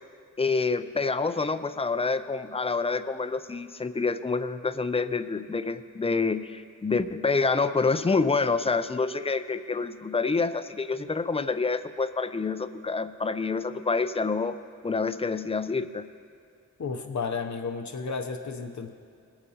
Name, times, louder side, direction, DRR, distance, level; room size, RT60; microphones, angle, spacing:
voice 1, 0.4-14.6 14.8-16.1, left 4 dB, 20° left, 11 dB, 0.4 m, -27 dB
voice 2, 16.8-18.9, left 5 dB, 65° left, 5 dB, 0.7 m, -32 dB
19.0 x 8.8 x 2.8 m, 2.4 s
wide cardioid pair, 60°, 31 cm